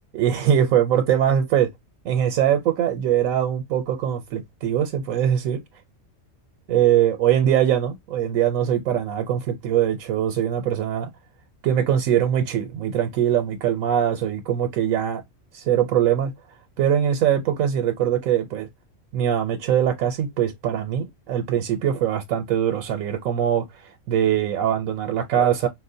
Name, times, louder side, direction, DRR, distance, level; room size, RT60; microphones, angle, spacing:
voice 1, 0.1-1.7 2.0-5.6 6.7-11.1 11.6-15.2 15.5-16.3 16.8-18.7 19.1-25.7, right 10 dB, 85° right, 1.0 m, -22 dB
4.5 x 2.1 x 2.6 m
omnidirectional pair, 1.4 m